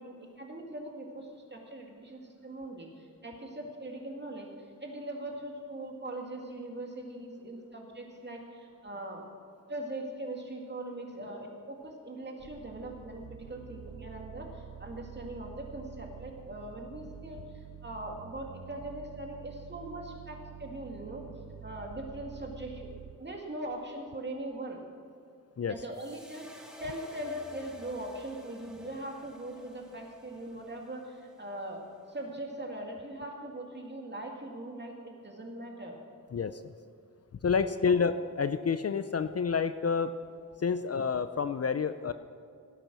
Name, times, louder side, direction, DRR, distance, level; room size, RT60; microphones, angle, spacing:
voice 1, 0.0-4.5 4.8-9.2 9.7-17.5 17.8-21.3 21.6-22.9 23.2-24.8 25.7-31.8 32.1-36.0 37.8-38.0, right 1 dB, 30° right, 1 dB, 2.3 m, -41 dB
sound 1, 12.4-23.2, right 8 dB, 75° right, 0.7 m, -48 dB
sound 2, 25.9-32.2, right 1 dB, ahead, 1.8 m, -53 dB
voice 2, 37.4-40.1 40.6-42.1, left 5 dB, 45° left, 11 dB, 0.5 m, -29 dB
17.5 x 8.9 x 6.2 m, 2.3 s
wide cardioid pair, 125°, 34 cm